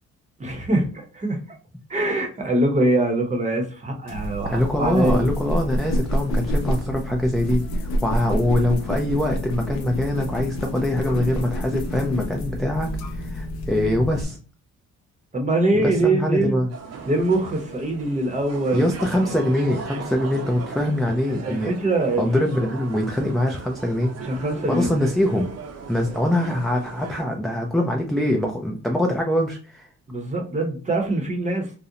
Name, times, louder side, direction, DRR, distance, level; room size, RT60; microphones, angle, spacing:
voice 1, 0.4-1.4 1.9-5.3 15.3-16.6 17.1-19.3 21.4-22.3 24.2-25.0 30.1-31.7, right 2 dB, 25° right, 2 dB, 0.8 m, -23 dB
sound 1, 4.1-14.2, equal, 65° left, 0.6 m, -28 dB
voice 2, 4.4-14.4 15.8-16.7 18.7-21.7 22.2-24.1 24.7-25.5 25.9-29.9, left 1 dB, ahead, 1 dB, 0.3 m, -23 dB
sound 2, 16.7-27.2, right 5 dB, 55° right, 0.6 m, -38 dB
2.5 x 2.0 x 2.7 m, 0.37 s
cardioid pair, 90°, 30 cm